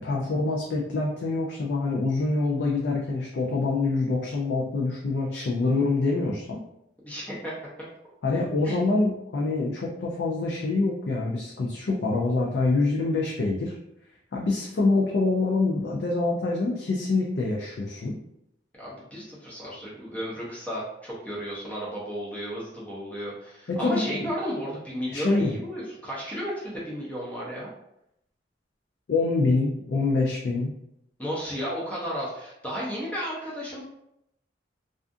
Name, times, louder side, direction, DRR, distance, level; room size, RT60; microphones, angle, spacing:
voice 1, 0.0-6.6 8.2-13.8 14.3-18.2 23.7-24.3 25.1-25.6 29.1-30.7, left 3 dB, 65° left, -3 dB, 0.4 m, -25 dB
voice 2, 7.0-7.5 8.6-8.8 18.7-27.7 31.2-33.8, equal, 10° left, -7 dB, 0.5 m, -33 dB
2.4 x 2.3 x 2.5 m, 0.80 s
head